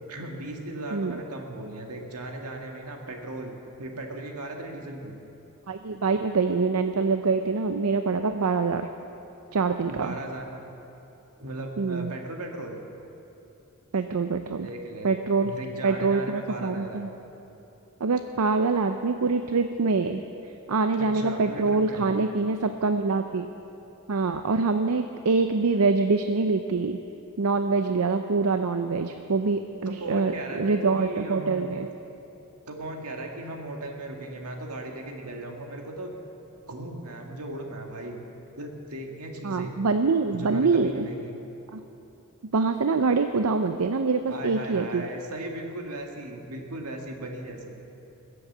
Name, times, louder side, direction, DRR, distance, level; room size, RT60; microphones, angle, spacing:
voice 1, 0.1-5.1 9.9-10.6 11.4-12.8 14.5-15.2 15.4-17.1 21.0-22.1 30.0-31.7 32.7-36.1 36.7-38.2 38.6-39.7 40.3-41.4 44.3-47.8, right 1 dB, 90° right, 2 dB, 1.9 m, -37 dB
voice 2, 5.7-8.9 9.5-10.2 11.8-12.1 13.9-14.7 15.0-15.5 15.8-17.1 18.0-20.2 20.7-23.5 24.1-27.0 27.4-31.9 39.4-41.1 41.7-41.8 42.5-45.0, right 4 dB, 75° right, 8 dB, 0.6 m, -25 dB
21.5 x 7.9 x 7.3 m, 3.0 s
head